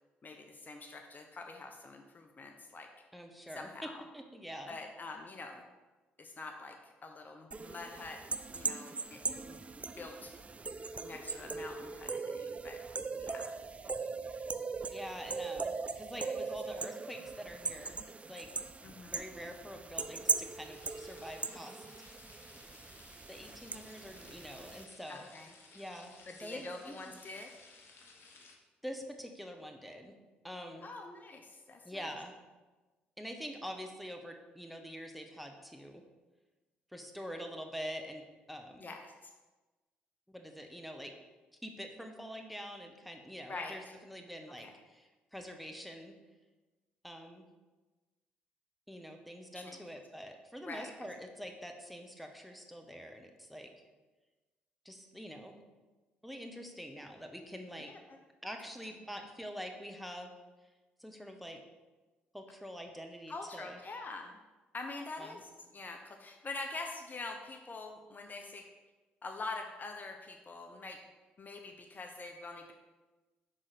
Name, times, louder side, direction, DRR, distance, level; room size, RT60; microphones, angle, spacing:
voice 1, 0.2-2.9 3.6-3.9 4.7-5.6 6.2-9.6 10.0-10.3 11.0-12.8 13.2-13.6 16.2-16.4 18.8-19.2 25.1-25.5 26.3-27.5 30.8-31.8 38.8-39.3 43.5-43.9 44.6-44.7 49.5-49.8 50.7-50.9 57.9-58.2 63.3-64.4 64.7-68.7 69.2-71.0 71.4-72.7, left 3 dB, 35° left, 3 dB, 0.7 m, -45 dB
voice 2, 3.1-4.8 14.9-18.0 18.3-18.5 19.0-21.8 23.3-25.3 25.7-27.1 28.8-30.1 30.4-30.9 31.8-32.4 33.2-36.0 36.9-38.8 40.3-41.1 41.6-46.1 47.0-47.5 48.9-53.7 54.8-55.6 56.2-57.9 58.4-60.3 61.0-61.6 62.3-63.8 65.2-65.4, equal, ahead, 4 dB, 0.9 m, -45 dB
sound 1, 7.5-24.8, right 4 dB, 25° right, 0.3 m, -40 dB
sound 2, 20.7-28.6, left 3 dB, 50° left, 1.0 m, -58 dB
5.6 x 3.9 x 4.9 m, 1.2 s
hypercardioid pair, 45°, 5 cm